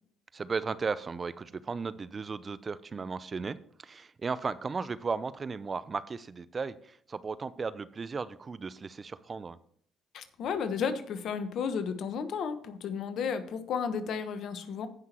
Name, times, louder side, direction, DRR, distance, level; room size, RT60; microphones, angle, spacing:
voice 1, 0.3-3.6 3.8-6.8 7.1-9.6, right 4 dB, 35° right, 16 dB, 0.6 m, -35 dB
voice 2, 10.1-14.9, left 6 dB, 65° left, 10 dB, 1.2 m, -33 dB
16.5 x 5.9 x 3.0 m, 0.62 s
hypercardioid pair, 60°, 0 cm